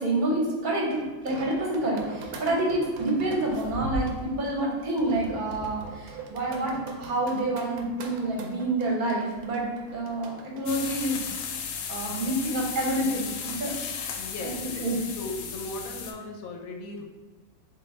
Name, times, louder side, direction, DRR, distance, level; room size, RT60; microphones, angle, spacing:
voice 1, 0.0-11.3 11.9-13.8 14.0-15.0, right 1 dB, 40° right, -2 dB, 0.9 m, -28 dB
sound 1, 1.0-11.1, right 3 dB, 70° right, 1.0 m, -40 dB
sound 2, 10.7-16.1, left 7 dB, 90° left, 1.1 m, -35 dB
voice 2, 14.2-17.0, left 2 dB, 70° left, 2 dB, 1.0 m, -38 dB
3.9 x 3.7 x 3.3 m, 1.3 s
omnidirectional pair, 1.7 m